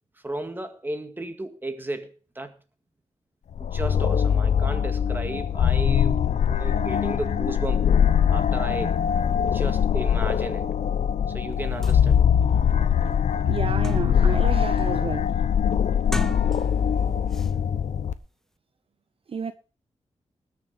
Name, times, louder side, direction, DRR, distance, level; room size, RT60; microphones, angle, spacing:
voice 1, 0.2-2.5 3.6-6.2 6.5-9.0 9.5-10.7 11.3-12.3, right 2 dB, 15° right, 1.9 m, -34 dB
sound 1, 3.5-18.1, left 8 dB, 85° left, 0.8 m, -22 dB
sound 2, 11.5-11.6 11.8-12.0 12.5-12.6 13.0-14.4 14.8-15.1 15.9-16.9 17.3-17.5, equal, 5° left, 0.8 m, -36 dB
voice 2, 13.5-15.3 19.3-19.5, right 6 dB, 50° right, 0.7 m, -31 dB
19.5 x 6.8 x 5.4 m
wide cardioid pair, 100°, 12 cm